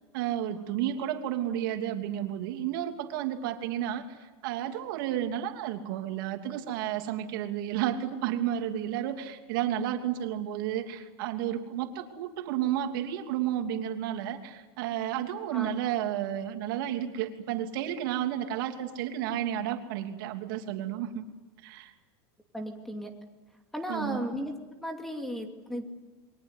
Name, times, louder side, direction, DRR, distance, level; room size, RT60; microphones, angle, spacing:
voice 1, 0.1-21.2 21.6-21.9 23.9-24.3, right 11 dB, 55° right, 5 dB, 2.9 m, -32 dB
voice 2, 22.5-23.1 23.7-24.5 24.8-25.9, equal, ahead, 4 dB, 2.5 m, -35 dB
29.0 x 23.0 x 8.3 m, 1.2 s
supercardioid pair, 170°, 13 cm